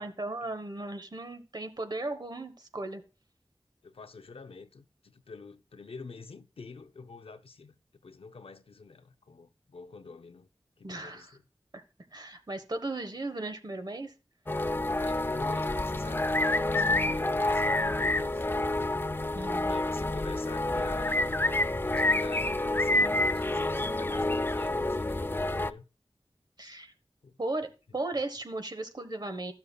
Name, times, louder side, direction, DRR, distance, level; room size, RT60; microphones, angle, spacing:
voice 1, 0.0-3.0 10.8-11.3 12.1-14.1 19.3-19.7 26.6-26.9 27.4-29.5, right 2 dB, 45° right, 1.1 m, -36 dB
voice 2, 3.8-7.7 8.0-10.5 10.8-11.4 14.9-18.5 19.6-21.3 21.8-25.8 27.2-27.4 28.1-28.2, left 4 dB, 85° left, 0.6 m, -47 dB
sound 1, 14.5-25.7, left 2 dB, 20° left, 0.4 m, -28 dB
12.5 x 6.7 x 2.3 m
wide cardioid pair, 40°, 10 cm